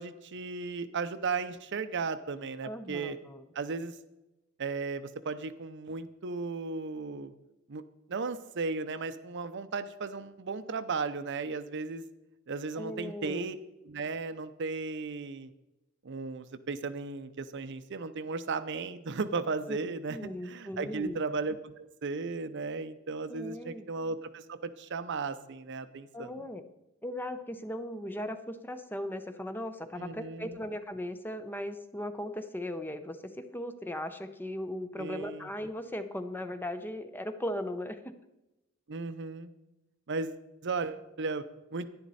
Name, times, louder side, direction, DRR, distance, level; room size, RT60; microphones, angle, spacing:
voice 1, 0.0-3.2 3.5-4.0 4.6-7.3 7.7-7.8 8.1-12.0 12.5-13.6 13.8-15.5 16.0-26.3 30.0-30.6 35.0-35.5 38.9-39.5 40.1-41.4 41.7-41.9, right 4 dB, 60° right, 12 dB, 0.6 m, -35 dB
voice 2, 2.6-3.4 12.8-13.5 19.7-19.8 20.1-21.2 23.3-23.9 26.1-26.6 27.0-38.1, left 1 dB, 10° left, 9 dB, 0.6 m, -38 dB
10.5 x 10.5 x 4.1 m, 0.95 s
head